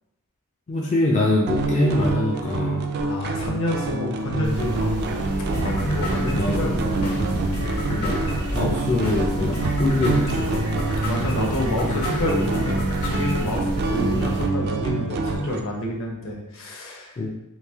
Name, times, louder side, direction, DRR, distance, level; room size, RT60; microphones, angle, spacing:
voice 1, 0.7-2.8 6.2-6.7 7.9-8.2 8.5-10.7 17.2-17.3, left 2 dB, 30° left, -3 dB, 0.3 m, -23 dB
sound 1, 1.5-15.6, right 3 dB, 50° right, 0.3 m, -27 dB
voice 2, 3.0-5.1 5.4-7.8 11.0-17.2, left 1 dB, 60° left, 0 dB, 0.8 m, -29 dB
sound 2, 4.4-14.4, equal, 85° right, 0.8 m, -31 dB
sound 3, 5.5-13.5, left 1 dB, 85° left, 1.2 m, -32 dB
3.1 x 2.6 x 3.4 m, 0.92 s
head